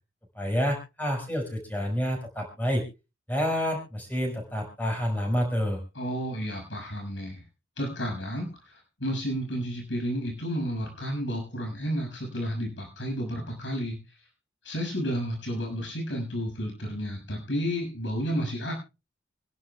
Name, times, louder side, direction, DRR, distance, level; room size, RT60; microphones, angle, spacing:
voice 1, 0.4-2.8 3.3-5.8, equal, 10° left, 1 dB, 5.4 m, -28 dB
voice 2, 5.9-7.4 7.8-14.0 14.6-18.7, equal, 85° left, 1 dB, 6.6 m, -31 dB
27.0 x 11.5 x 2.4 m, 0.30 s
head